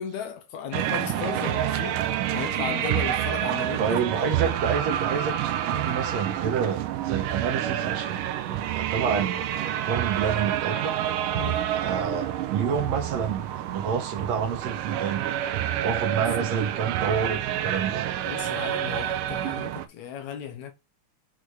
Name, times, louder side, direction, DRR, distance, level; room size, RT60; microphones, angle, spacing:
voice 1, 0.0-2.0 2.3-4.5 11.3-11.6 16.2-16.3 18.2-20.7, left 8 dB, 70° left, 2.0 m, -35 dB
sound 1, 0.7-19.9, right 11 dB, 90° right, 2.4 m, -28 dB
voice 2, 3.8-11.0 11.7-15.3 15.8-18.0, right 6 dB, 65° right, 2.0 m, -29 dB
6.4 x 4.0 x 4.8 m
omnidirectional pair, 3.7 m